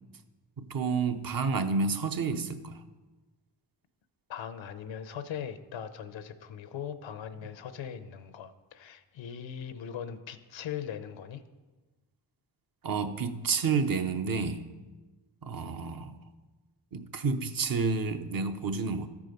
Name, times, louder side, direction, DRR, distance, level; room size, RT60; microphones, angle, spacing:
voice 1, 0.6-2.8 12.8-14.7 15.4-16.2 16.9-19.1, right 4 dB, 50° right, 0.8 m, -30 dB
voice 2, 4.3-11.4, left 8 dB, 85° left, 0.8 m, -40 dB
13.0 x 4.8 x 5.2 m
cardioid pair, 60°, 44 cm